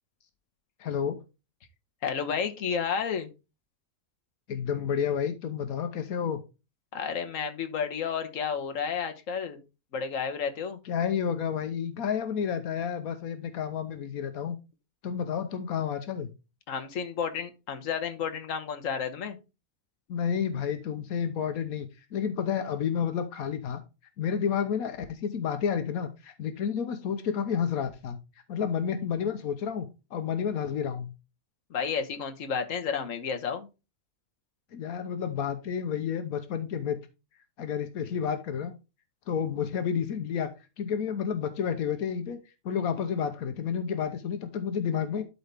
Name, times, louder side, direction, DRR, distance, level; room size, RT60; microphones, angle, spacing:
voice 1, 0.8-1.2 4.5-6.4 10.8-14.6 15.0-16.3 20.1-21.9 22.1-23.8 24.2-28.2 28.5-31.1 34.7-37.0 37.6-38.7 39.3-40.5 40.8-42.4 42.6-45.2, left 7 dB, 85° left, 8 dB, 1.3 m, -30 dB
voice 2, 2.0-3.3 6.9-9.6 9.9-10.8 16.7-19.4 31.7-33.7, left 6 dB, 65° left, 6 dB, 1.5 m, -31 dB
12.0 x 4.1 x 3.4 m, 0.27 s
omnidirectional pair, 1.5 m